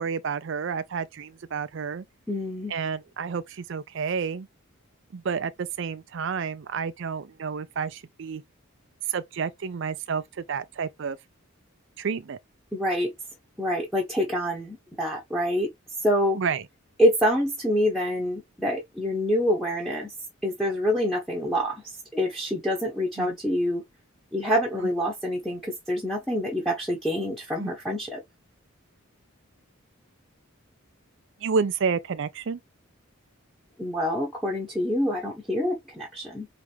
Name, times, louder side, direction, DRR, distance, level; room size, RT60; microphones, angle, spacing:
voice 1, 0.0-2.0 2.7-4.5 5.1-8.4 9.1-11.2 12.0-12.4 16.4-16.6 23.2-23.3 27.6-27.7 31.4-32.6, right 6 dB, 55° right, 0.4 m, -30 dB
voice 2, 2.3-2.7 12.7-13.1 13.6-15.7 16.0-16.4 17.0-20.1 20.4-21.8 22.1-23.8 24.3-28.2 33.8-36.5, equal, ahead, 1.1 m, -26 dB
4.9 x 3.3 x 3.3 m
head